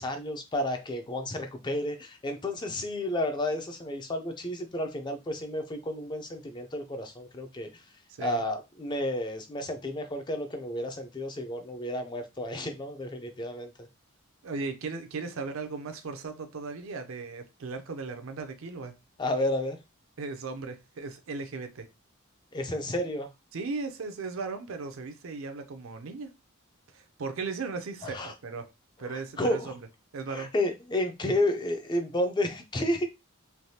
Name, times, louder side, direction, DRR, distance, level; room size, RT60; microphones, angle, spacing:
voice 1, 0.0-7.7 8.2-13.7 19.2-19.8 22.5-23.3 28.0-28.3 29.1-29.7 30.3-33.1, left 1 dB, 20° left, 0.4 m, -31 dB
voice 2, 8.1-8.4 14.4-18.9 20.2-21.9 23.5-26.3 26.9-28.7 29.0-29.8 30.1-30.5, right 4 dB, 65° right, 0.5 m, -37 dB
3.3 x 2.2 x 2.7 m
head